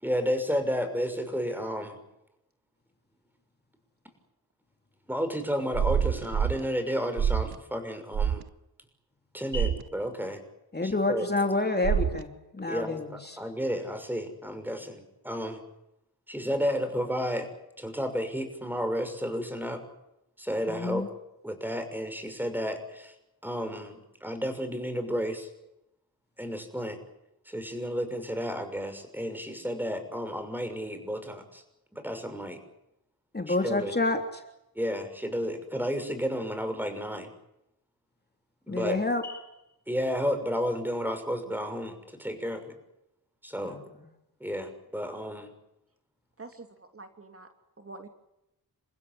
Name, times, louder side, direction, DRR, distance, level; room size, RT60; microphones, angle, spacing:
voice 1, 0.0-2.0 5.1-8.4 9.3-10.4 10.8-11.3 12.7-15.6 16.3-17.5 17.8-19.8 20.4-21.1 21.4-23.1 23.4-25.5 26.4-27.0 27.5-31.6 31.9-32.6 33.5-33.9 34.8-37.3 38.7-39.0 39.9-41.9 42.2-42.7 43.4-43.8 44.4-45.5, equal, 5° right, 8 dB, 6.3 m, -32 dB
sound 1, 5.7-6.6 7.2-7.6 8.1-8.4 9.5-9.8 11.8-12.2, right 8 dB, 70° right, 0.9 m, -26 dB
voice 2, 10.7-13.4 20.7-21.1 33.3-34.4 38.7-39.4 43.6-44.1, left 2 dB, 25° left, 5 dB, 3.3 m, -29 dB
voice 3, 46.4-47.5 47.8-48.1, right 3 dB, 35° right, 5 dB, 3.0 m, -46 dB
28.5 x 16.0 x 9.9 m, 0.86 s
wide cardioid pair, 90°, 38 cm